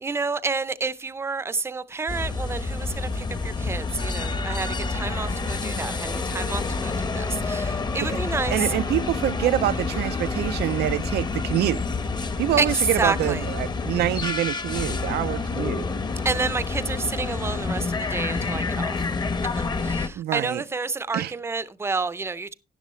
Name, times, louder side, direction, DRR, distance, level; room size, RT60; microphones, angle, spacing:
voice 1, 0.0-8.7 12.6-12.7 13.0-13.4 16.2-19.0 19.4-22.5, right 4 dB, 15° right, 0.6 m, -29 dB
sound 1, 2.1-20.1, left 4 dB, 25° left, 1.0 m, -28 dB
voice 2, 8.5-11.8 12.4-15.9 20.2-20.6 21.1-21.3, right 13 dB, 85° right, 0.5 m, -26 dB
12.5 x 11.0 x 3.1 m
cardioid pair, 155°, 16 cm